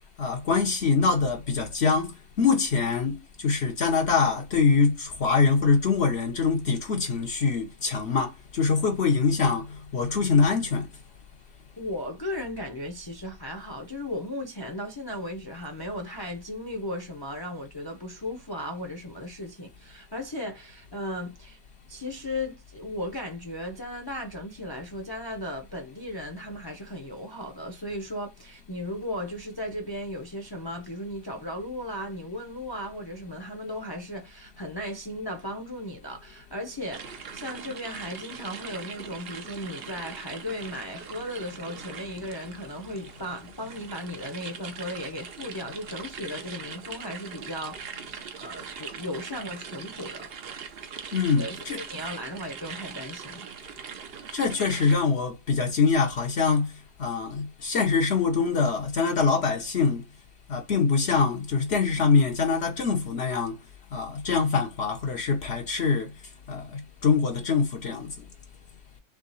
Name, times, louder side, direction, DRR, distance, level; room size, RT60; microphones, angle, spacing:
voice 1, 0.2-2.1 2.4-9.7 9.9-10.9 51.1-51.8 54.3-56.7 57.0-60.0 60.5-63.6 63.9-66.1 66.5-68.1, left 5 dB, 65° left, 1.0 m, -24 dB
voice 2, 11.8-21.6 21.9-48.0 48.4-50.3 51.4-53.5, left 1 dB, 25° left, 0.6 m, -36 dB
sound 1, 36.9-54.9, right 6 dB, 60° right, 0.9 m, -41 dB
3.6 x 3.3 x 3.9 m
omnidirectional pair, 1.2 m